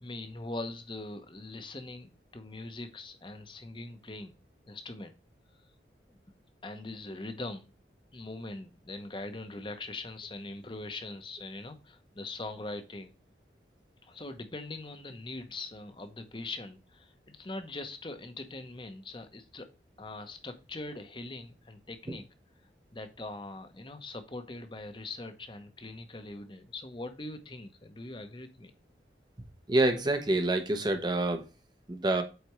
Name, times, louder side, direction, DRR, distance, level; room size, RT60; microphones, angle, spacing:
voice 1, 0.0-4.3 4.7-5.1 6.1-6.2 6.6-7.7 8.1-13.1 14.0-19.7 20.0-22.2 22.9-28.7, left 2 dB, 30° left, 0.9 m, -42 dB
voice 2, 29.7-31.5 31.9-32.2, right 2 dB, 25° right, 0.8 m, -27 dB
8.1 x 4.3 x 3.1 m
head